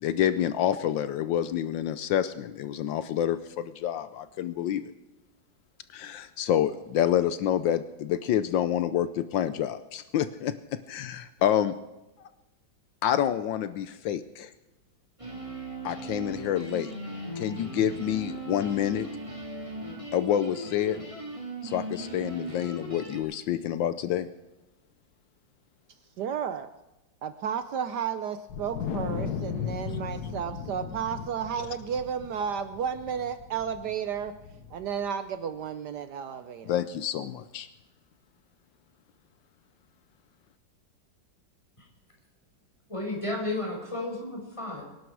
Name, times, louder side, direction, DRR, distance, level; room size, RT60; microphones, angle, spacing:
voice 1, 0.0-4.8 5.9-11.8 13.0-14.5 15.8-16.9 17.4-19.1 20.1-21.0 21.6-24.3 36.7-37.7, left 10 dB, 80° left, 12 dB, 1.4 m, -28 dB
sound 1, 15.2-23.2, right 1 dB, 15° right, 4.2 m, -38 dB
voice 2, 26.2-26.7 27.2-34.3 34.7-36.7, right 7 dB, 65° right, 11 dB, 1.2 m, -32 dB
Wind, 28.5-35.0, left 7 dB, 60° left, 1.6 m, -36 dB
voice 3, 42.9-44.8, left 2 dB, 15° left, -1 dB, 5.3 m, -33 dB
25.0 x 11.5 x 4.7 m, 1.1 s
omnidirectional pair, 2.1 m